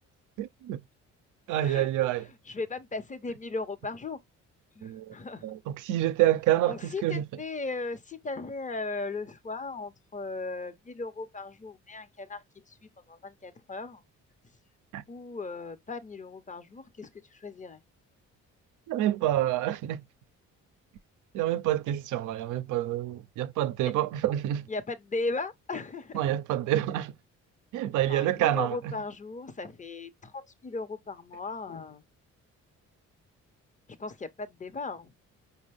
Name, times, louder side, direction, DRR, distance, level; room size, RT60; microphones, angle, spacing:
voice 1, 0.4-0.8 1.5-2.3 4.8-5.1 5.4-7.3 14.9-15.0 18.9-20.0 21.3-24.7 26.1-27.1 27.7-28.9, right 13 dB, 85° right, 0.6 m, -27 dB
voice 2, 2.5-4.2 4.8-5.5 6.7-12.8 13.1-14.0 15.1-17.8 23.8-23.9 24.7-26.3 28.1-32.0 34.0-35.1, left 3 dB, 25° left, 0.9 m, -37 dB
5.2 x 2.2 x 3.4 m
cardioid pair, 90°, 30 cm